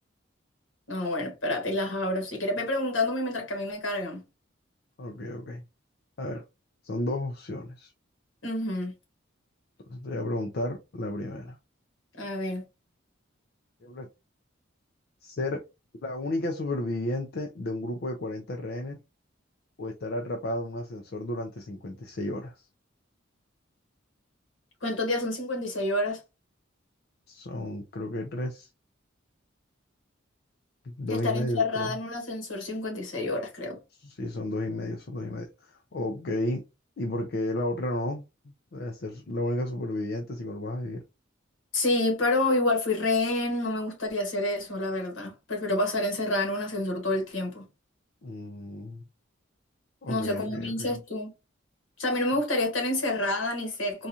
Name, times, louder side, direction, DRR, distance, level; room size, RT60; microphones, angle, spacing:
voice 1, 0.9-4.2 8.4-8.9 12.1-12.6 24.8-26.2 31.1-33.8 41.7-47.7 50.1-51.3 52.0-54.1, left 2 dB, 75° left, 1.5 m, -28 dB
voice 2, 5.0-5.6 6.2-6.4 6.8-7.9 9.9-11.6 13.8-14.1 15.2-15.6 16.0-19.0 19.8-22.7 27.3-28.7 30.8-32.0 34.0-36.6 37.0-38.3 38.7-41.0 48.2-49.0 50.0-51.0, left 1 dB, 55° left, 0.5 m, -32 dB
3.9 x 2.4 x 2.8 m
head